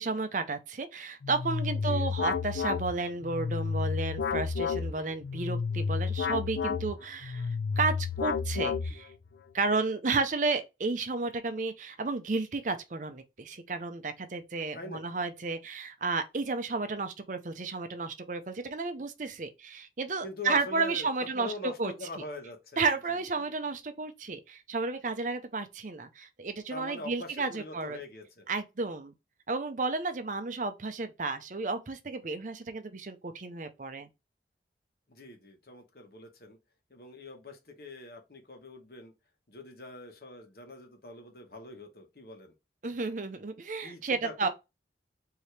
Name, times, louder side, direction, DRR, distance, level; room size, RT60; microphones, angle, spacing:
voice 1, 0.0-9.1 9.5-21.9 22.8-28.0 28.5-29.1 29.5-34.1 42.8-44.5, right 3 dB, 45° right, 0.6 m, -32 dB
sound 1, 1.2-9.3, left 5 dB, 75° left, 0.4 m, -31 dB
voice 2, 1.8-2.1 14.7-15.2 20.2-23.6 26.7-28.5 35.1-36.6 36.9-39.1 39.5-42.5 43.8-44.5, left 2 dB, 60° left, 1.1 m, -43 dB
4.7 x 2.8 x 3.3 m
head